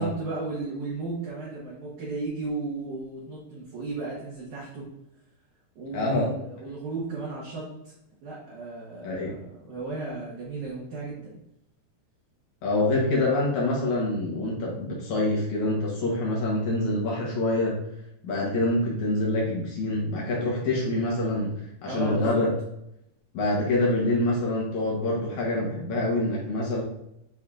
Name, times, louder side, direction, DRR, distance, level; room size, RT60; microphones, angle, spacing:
voice 1, 0.0-4.9 5.8-7.9 8.2-11.4 21.9-22.4, right 3 dB, 60° right, -7 dB, 2.3 m, -34 dB
voice 2, 5.9-6.3 9.0-9.4 12.6-17.8 18.2-22.5 23.3-26.8, left 1 dB, 70° left, -4 dB, 1.9 m, -26 dB
9.4 x 4.2 x 2.5 m, 0.82 s
omnidirectional pair, 5.0 m